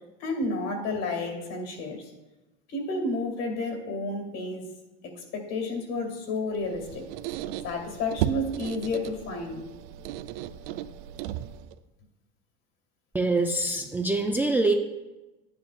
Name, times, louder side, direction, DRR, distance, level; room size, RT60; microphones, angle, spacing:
voice 1, 0.2-2.1 2.7-4.7 5.0-7.1 7.6-9.6, left 2 dB, 60° left, 3 dB, 2.3 m, -31 dB
Squeak, 6.5-11.8, right 11 dB, 80° right, 0.5 m, -35 dB
voice 2, 13.1-14.7, right 2 dB, 5° right, 3 dB, 0.4 m, -24 dB
11.0 x 9.5 x 2.5 m, 1.1 s
supercardioid pair, 125°, 29 cm